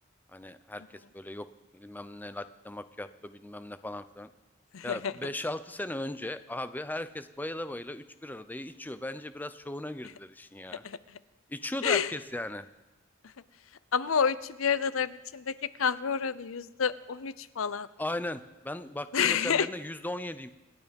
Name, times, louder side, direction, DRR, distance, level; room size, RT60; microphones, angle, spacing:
voice 1, 0.3-1.5 1.7-4.3 4.8-10.8 11.5-12.7 18.0-20.5, left 1 dB, 10° left, 12 dB, 0.6 m, -37 dB
voice 2, 4.7-5.1 10.8-11.0 11.8-12.1 13.9-17.9 19.1-19.7, left 7 dB, 85° left, 16 dB, 0.6 m, -29 dB
26.0 x 9.4 x 5.3 m, 1.0 s
head